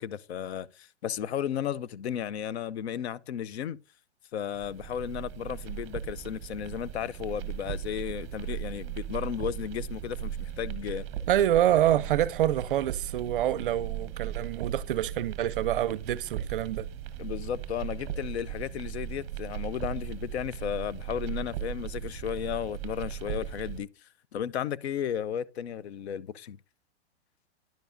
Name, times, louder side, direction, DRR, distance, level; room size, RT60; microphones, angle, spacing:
voice 1, 0.0-3.8 4.3-11.0 17.2-26.6, left 9 dB, 70° left, 0.6 m, -34 dB
sound 1, 4.5-23.8, right 10 dB, 25° right, 0.8 m, -37 dB
voice 2, 11.3-16.9, right 12 dB, 50° right, 0.5 m, -26 dB
10.5 x 6.9 x 2.6 m
hypercardioid pair, 165°, 34 cm